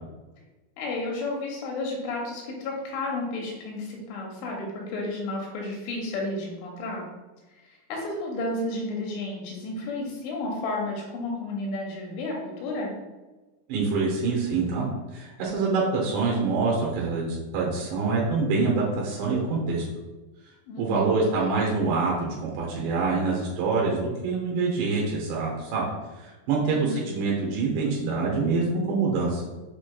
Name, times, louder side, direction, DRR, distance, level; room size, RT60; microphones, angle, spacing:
voice 1, 0.8-7.1 7.6-12.9 20.7-21.2 26.7-27.2, left 2 dB, 85° left, -1 dB, 3.0 m, -32 dB
voice 2, 13.7-14.8 15.1-19.8 20.8-25.9 26.2-29.5, right 4 dB, 75° right, -3 dB, 2.8 m, -25 dB
7.1 x 3.1 x 2.2 m, 1.1 s
omnidirectional pair, 5.6 m